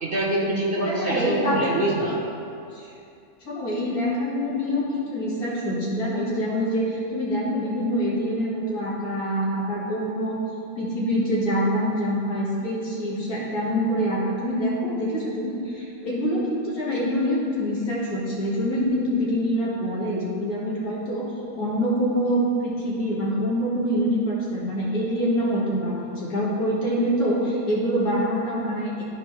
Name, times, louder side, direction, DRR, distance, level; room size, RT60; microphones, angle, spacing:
voice 1, 0.0-2.2, right 1 dB, 40° right, -4 dB, 1.1 m, -25 dB
voice 2, 0.8-1.8 2.7-2.9 3.4-10.4 10.7-21.3 21.6-29.0, equal, 75° left, -6 dB, 2.3 m, -25 dB
13.0 x 4.6 x 3.2 m, 2.6 s
omnidirectional pair, 1.6 m